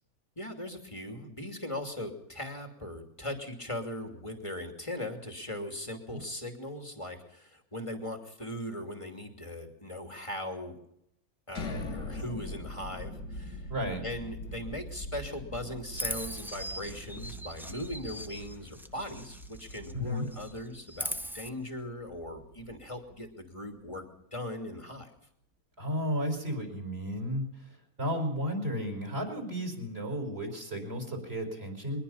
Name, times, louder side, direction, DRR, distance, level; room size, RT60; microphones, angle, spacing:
voice 1, 0.4-10.8 11.5-13.7 14.0-24.0 24.3-25.1, left 1 dB, 20° left, 4 dB, 2.7 m, -39 dB
sound 1, 11.5-23.3, left 1 dB, 80° left, 2.8 m, -43 dB
voice 2, 13.7-14.0 19.9-20.2 25.8-32.0, equal, 40° right, 4 dB, 5.2 m, -33 dB
Chirp tweet, 15.9-20.0 20.3-21.5, equal, ahead, 0.5 m, -40 dB
23.0 x 20.5 x 5.7 m, 0.74 s
omnidirectional pair, 1.7 m